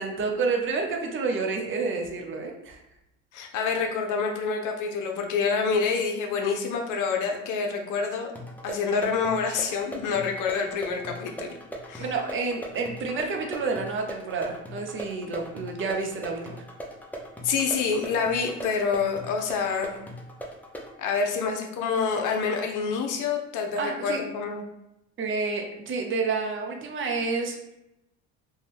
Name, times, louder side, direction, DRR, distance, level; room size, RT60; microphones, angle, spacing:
voice 1, 0.0-2.8 12.0-16.6 23.8-24.2 25.2-27.6, right 4 dB, 35° right, 2 dB, 0.6 m, -29 dB
voice 2, 3.3-8.3 8.6-11.5 11.9-12.0 17.4-20.0 21.0-24.6, left 5 dB, 55° left, 3 dB, 0.6 m, -27 dB
sound 1, 8.4-20.9, equal, 5° left, 0.5 m, -40 dB
2.6 x 2.2 x 3.4 m, 0.86 s
supercardioid pair, 75°, 37 cm